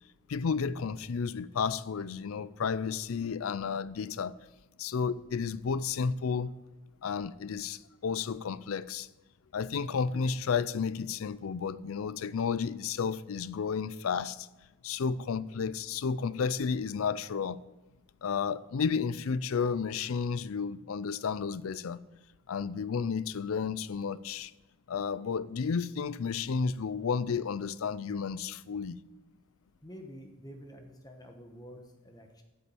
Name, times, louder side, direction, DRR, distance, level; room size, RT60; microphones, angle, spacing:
voice 1, 0.3-4.3 4.8-6.6 7.0-9.1 9.5-14.5 14.8-17.6 18.2-22.0 22.5-24.5 24.9-29.0, left 6 dB, 75° left, 0.4 m, -32 dB
voice 2, 29.8-32.4, equal, 20° left, 1.1 m, -48 dB
8.7 x 7.1 x 8.4 m
head